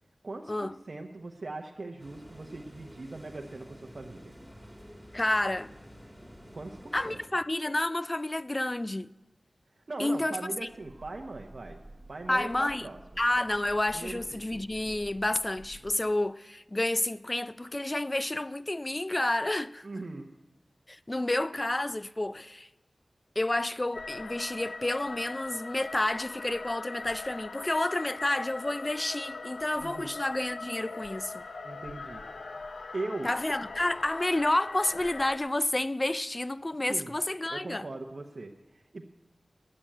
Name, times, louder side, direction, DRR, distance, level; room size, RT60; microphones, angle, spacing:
voice 1, 0.2-4.3 6.5-7.2 9.9-11.8 12.1-13.0 13.9-14.4 19.8-20.3 29.8-30.1 31.6-32.2 32.9-33.3 36.9-37.1 37.5-39.1, right 2 dB, 60° right, 0.9 m, -40 dB
sound 1, 2.0-7.3, equal, 5° left, 2.6 m, -50 dB
voice 2, 5.1-5.7 6.9-9.1 10.0-10.4 12.3-12.9 13.2-19.9 20.9-22.7 23.4-31.4 33.2-37.9, left 1 dB, 30° left, 0.4 m, -30 dB
Train, 10.5-16.3, right 2 dB, 30° right, 1.2 m, -51 dB
sound 2, 23.9-35.4, left 3 dB, 85° left, 0.6 m, -41 dB
9.9 x 8.7 x 9.0 m
cardioid pair, 45°, 0 cm